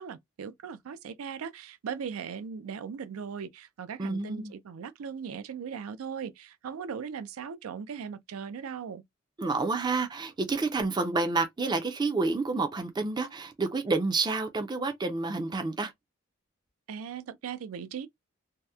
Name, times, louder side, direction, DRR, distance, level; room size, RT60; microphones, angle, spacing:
voice 1, 0.0-9.0 16.9-18.1, right 7 dB, 90° right, 0.4 m, -38 dB
voice 2, 4.0-4.5 9.4-15.9, right 3 dB, 20° right, 0.4 m, -29 dB
2.8 x 2.0 x 2.2 m
head